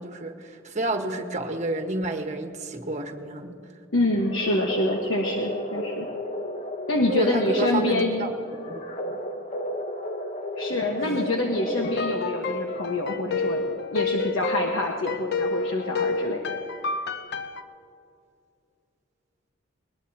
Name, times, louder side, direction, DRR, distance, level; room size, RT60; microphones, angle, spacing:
voice 1, 0.0-3.6 7.1-8.3 8.7-8.8 9.1-9.2 11.0-11.1, right 2 dB, 35° right, 3 dB, 1.3 m, -29 dB
voice 2, 3.9-6.1 6.9-8.3 10.6-16.4, left 1 dB, 70° left, 1 dB, 1.3 m, -26 dB
sound 1, 4.2-12.6, equal, 40° left, 1.1 m, -33 dB
sound 2, 11.8-17.6, left 3 dB, 55° left, 0.6 m, -29 dB
21.5 x 19.5 x 2.8 m, 2.5 s
head